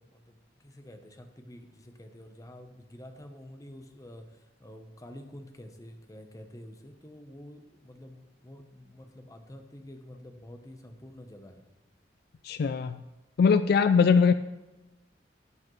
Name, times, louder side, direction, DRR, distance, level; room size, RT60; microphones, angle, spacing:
voice 1, 0.0-11.7, left 1 dB, 20° left, 6 dB, 0.8 m, -48 dB
voice 2, 12.4-13.0 13.4-14.3, left 5 dB, 55° left, 12 dB, 0.3 m, -21 dB
12.0 x 8.4 x 3.2 m, 1.1 s
head